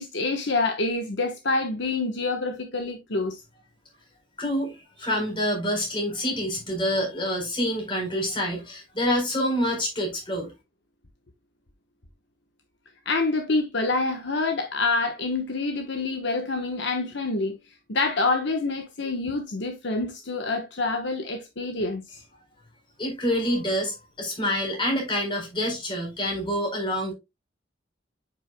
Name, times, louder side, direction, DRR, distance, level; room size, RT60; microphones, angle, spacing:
voice 1, 0.0-3.4 13.0-17.6 17.9-22.2, left 3 dB, 65° left, 1.1 m, -27 dB
voice 2, 4.4-10.5 23.0-27.1, equal, 25° left, 4.1 m, -27 dB
8.7 x 6.1 x 2.2 m
head